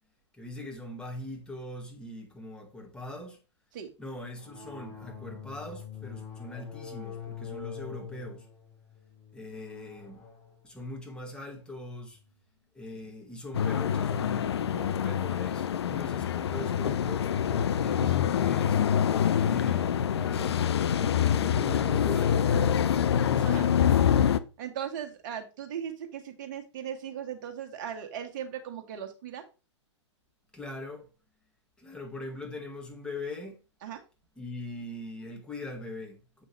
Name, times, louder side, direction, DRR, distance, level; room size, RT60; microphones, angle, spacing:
voice 1, 0.3-3.4 4.0-8.5 9.3-10.2 10.6-12.2 12.7-18.8 19.3-23.8 30.5-31.1 31.8-33.6 34.4-36.5, left 1 dB, 5° left, 1.6 m, -41 dB
sound 1, 4.4-12.5, left 7 dB, 30° left, 4.0 m, -45 dB
sound 2, 13.5-24.4, left 9 dB, 60° left, 0.5 m, -25 dB
voice 2, 24.6-29.4 33.8-34.0, right 9 dB, 40° right, 1.5 m, -38 dB
7.8 x 5.2 x 3.2 m
figure-of-eight pair, 110°, 15 cm